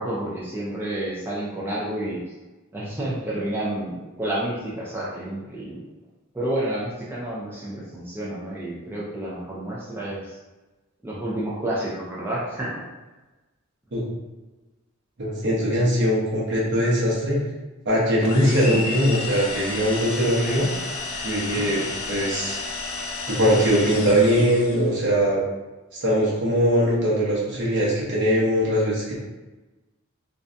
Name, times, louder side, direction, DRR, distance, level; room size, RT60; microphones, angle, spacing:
voice 1, 0.0-2.2 2.7-5.8 6.3-10.4 11.0-12.8 18.4-18.8 21.3-21.7, right 1 dB, 10° right, -7 dB, 0.4 m, -30 dB
voice 2, 15.2-17.4 17.9-20.7 21.2-22.6 23.3-25.4 26.0-29.1, equal, 55° right, -5 dB, 0.8 m, -21 dB
sound 1, 18.2-24.9, left 3 dB, 80° left, 0.4 m, -32 dB
2.5 x 2.1 x 2.5 m, 1.1 s
head